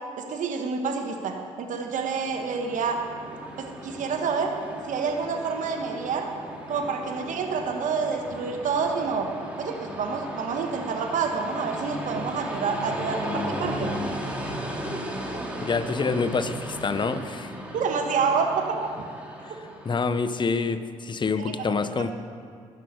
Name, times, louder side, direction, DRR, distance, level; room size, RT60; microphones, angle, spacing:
voice 1, 0.2-3.0 3.6-4.5 4.9-6.3 6.7-9.3 9.6-13.9 17.7-18.6 21.4-21.5, right 5 dB, 65° right, 3 dB, 1.4 m, -28 dB
Train, 1.9-20.5, equal, 10° right, 2.6 m, -36 dB
voice 2, 15.6-17.5 19.4-19.5 19.8-22.1, left 4 dB, 35° left, 12 dB, 0.8 m, -27 dB
12.0 x 6.3 x 8.8 m, 2.4 s
supercardioid pair, 60°, 14 cm